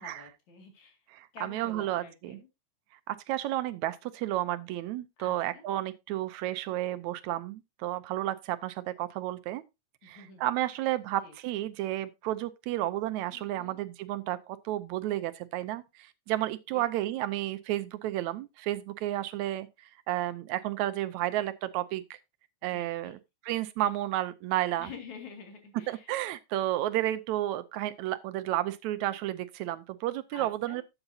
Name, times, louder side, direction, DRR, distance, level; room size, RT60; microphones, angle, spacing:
voice 1, 0.0-1.0 1.3-2.5 5.2-5.6 10.0-10.8 11.2-11.4 13.3-13.8 16.7-17.1 22.7-23.2 24.8-26.2 30.3-30.8, left 5 dB, 75° left, 3.7 m, -49 dB
voice 2, 1.1-2.4 3.1-9.6 10.0-22.2 22.6-23.2 23.5-24.9 25.9-30.8, right 14 dB, 80° right, 2.0 m, -32 dB
12.0 x 8.0 x 2.7 m
omnidirectional pair, 3.4 m